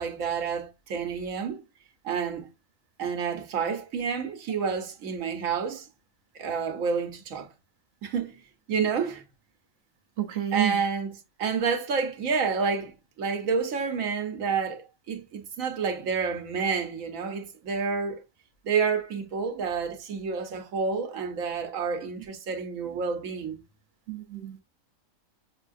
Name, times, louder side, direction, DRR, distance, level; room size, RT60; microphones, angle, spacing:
voice 1, 0.0-1.6 2.0-2.5 3.0-5.9 6.3-7.5 8.0-8.4 8.7-9.2 10.5-18.2 18.6-23.6, right 5 dB, 75° right, 1.2 m, -29 dB
voice 2, 10.2-10.8 24.1-24.6, right 12 dB, 60° right, 0.8 m, -29 dB
6.5 x 2.3 x 2.5 m
omnidirectional pair, 1.4 m